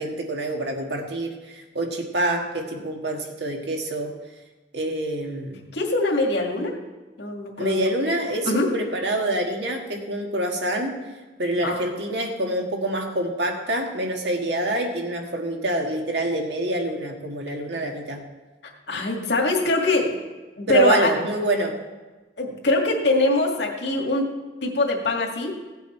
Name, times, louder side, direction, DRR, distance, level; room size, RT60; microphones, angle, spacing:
voice 1, 0.0-4.1 4.7-5.7 7.6-11.0 11.4-18.2 20.7-21.7, right 1 dB, 75° right, 2 dB, 1.7 m, -26 dB
voice 2, 5.7-6.8 7.2-7.8 8.4-8.7 11.6-11.9 18.9-20.2 20.6-21.1 22.4-24.3 24.6-25.6, left 2 dB, 75° left, 0 dB, 2.0 m, -23 dB
16.5 x 8.1 x 4.5 m, 1.2 s
head